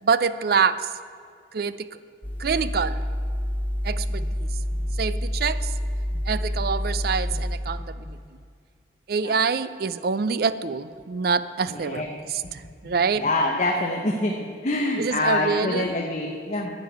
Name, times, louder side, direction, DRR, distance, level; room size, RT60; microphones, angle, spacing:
voice 1, 0.0-0.9 1.5-1.9 2.4-3.0 3.8-4.4 5.0-5.7 6.3-8.0 9.1-12.0 12.3-13.3 15.0-15.9, right 5 dB, 55° right, 14 dB, 0.4 m, -25 dB
sound 1, 2.2-7.6, equal, 10° left, 1.0 m, -28 dB
voice 2, 11.7-12.1 13.2-14.3 14.6-16.7, left 2 dB, 40° left, 1 dB, 0.9 m, -25 dB
10.5 x 6.8 x 9.2 m, 2.1 s
head